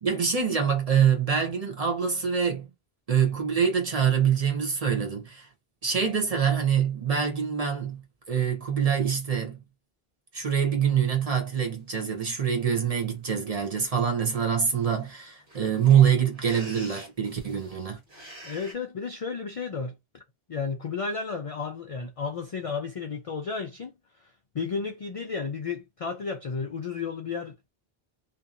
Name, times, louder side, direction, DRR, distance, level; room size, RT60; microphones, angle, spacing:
voice 1, 0.0-2.7 3.1-5.5 5.8-8.0 8.3-9.6 10.3-18.0, right 7 dB, 40° right, 0.8 m, -25 dB
sound 1, 11.9-12.0 12.5-12.9 13.6-13.8 14.1-14.2 14.4-18.7, equal, 55° right, 1.7 m, -47 dB
voice 2, 18.4-20.2 20.5-23.9 24.5-27.7, left 5 dB, 60° left, 0.3 m, -33 dB
2.7 x 2.6 x 2.5 m
omnidirectional pair, 1.1 m